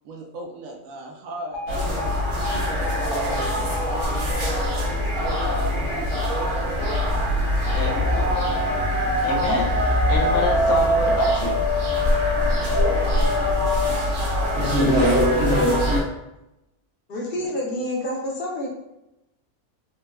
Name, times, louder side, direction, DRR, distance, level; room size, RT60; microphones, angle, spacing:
voice 1, 0.0-1.7 2.5-7.3, right 2 dB, 70° right, 2 dB, 0.9 m, -37 dB
Alarm, 1.5-9.6, left 2 dB, 30° right, 0.5 m, -36 dB
sound 1, 1.7-16.0, left 1 dB, 90° right, 1.3 m, -22 dB
voice 2, 7.7-8.3 9.2-11.6, left 3 dB, 80° left, 1 dB, 1.1 m, -27 dB
voice 3, 17.1-18.7, left 1 dB, 50° left, -3 dB, 0.8 m, -28 dB
4.2 x 2.1 x 2.3 m, 0.90 s
omnidirectional pair, 1.5 m